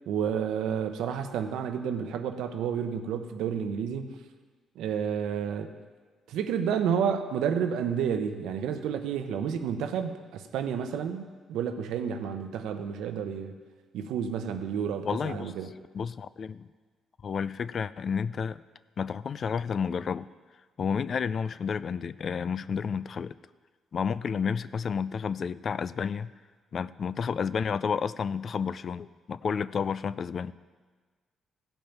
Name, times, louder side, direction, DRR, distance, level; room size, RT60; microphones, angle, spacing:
voice 1, 0.1-4.2 4.8-5.8 6.3-13.5 13.9-15.7, right 7 dB, 85° right, 8 dB, 0.8 m, -30 dB
voice 2, 15.0-15.5 15.9-16.7 17.2-18.6 19.0-20.3 20.8-23.3 23.9-26.3 26.7-30.5, left 6 dB, 50° left, 16 dB, 0.3 m, -31 dB
15.5 x 5.4 x 5.8 m, 1.4 s
cardioid pair, 90°, 0 cm